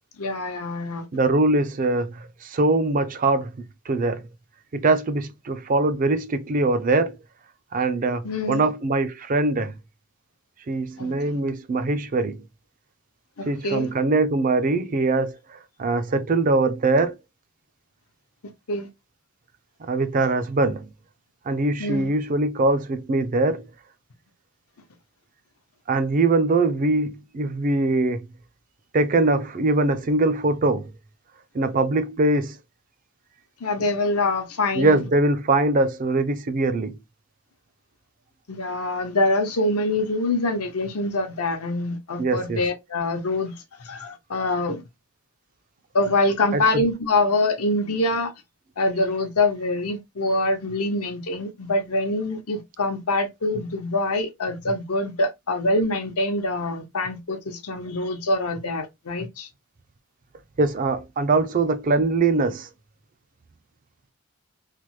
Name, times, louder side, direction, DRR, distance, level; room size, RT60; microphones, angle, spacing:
voice 1, 0.2-1.1 8.2-8.7 11.0-11.4 13.4-13.9 18.7-18.9 21.8-22.1 33.6-35.1 38.5-44.8 45.9-48.3 48.8-59.5, left 2 dB, 85° left, 0.8 m, -25 dB
voice 2, 1.1-3.5 3.9-4.3 4.7-7.2 7.7-9.7 10.7-12.4 13.5-17.1 19.8-20.9 21.5-23.6 25.9-28.2 28.9-30.9 31.5-32.6 34.8-37.0 42.2-42.6 46.5-46.8 60.6-62.7, right 2 dB, 35° right, 0.4 m, -22 dB
3.3 x 2.1 x 3.0 m
head